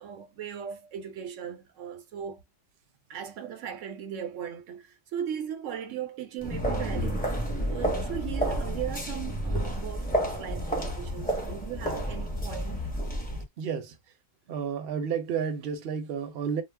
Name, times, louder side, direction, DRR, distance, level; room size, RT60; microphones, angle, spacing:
voice 1, 0.0-2.4 3.1-7.3 7.7-12.9, right 9 dB, 85° right, 1.0 m, -38 dB
sound 1, 6.4-13.4, right 1 dB, 10° left, 0.7 m, -30 dB
voice 2, 13.6-13.9 14.5-16.6, right 7 dB, 60° right, 0.8 m, -31 dB
2.3 x 2.0 x 3.3 m
omnidirectional pair, 1.3 m